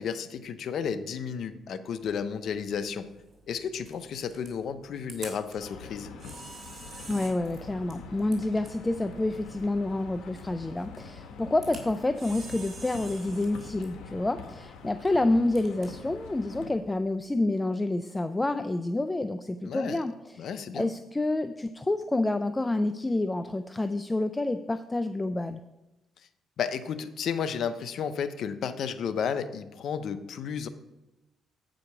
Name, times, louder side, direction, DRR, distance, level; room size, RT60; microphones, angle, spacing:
voice 1, 0.0-3.1 3.5-6.1 19.7-20.0 20.4-20.9 26.6-30.7, left 7 dB, 65° left, 10 dB, 0.6 m, -32 dB
Camera, 2.0-17.5, right 3 dB, 50° right, 2.8 m, -50 dB
sound 1, 5.6-16.7, left 5 dB, 85° left, 1.1 m, -45 dB
voice 2, 7.1-20.5 20.7-25.6, left 2 dB, 15° left, 10 dB, 0.3 m, -28 dB
8.3 x 5.1 x 5.8 m, 0.96 s
cardioid pair, 90°, 0 cm